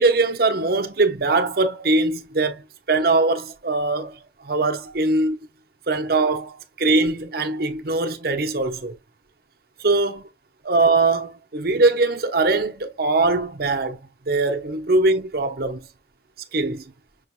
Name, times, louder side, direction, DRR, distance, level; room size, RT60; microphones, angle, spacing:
voice 1, 0.0-5.4 5.9-9.0 9.8-10.2 10.6-14.0 14.3-15.9 16.5-16.8, right 3 dB, 55° right, 0.9 m, -21 dB
6.3 x 3.0 x 2.2 m
head